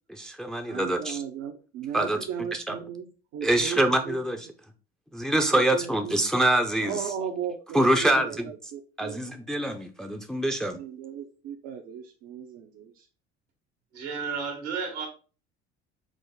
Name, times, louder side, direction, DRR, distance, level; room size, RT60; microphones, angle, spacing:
voice 1, 0.1-1.2 1.9-2.2 2.7-2.8 3.4-4.4 5.1-7.0 7.7-8.4 9.0-10.8, right 1 dB, ahead, 5 dB, 0.5 m, -25 dB
voice 2, 0.7-3.1 3.3-4.2 5.5-6.2 6.8-9.2 10.7-13.1, right 8 dB, 60° right, 1 dB, 0.6 m, -36 dB
voice 3, 13.9-15.1, right 5 dB, 85° right, 2 dB, 1.3 m, -32 dB
4.8 x 2.0 x 3.7 m, 0.36 s
hypercardioid pair, 65°, 33 cm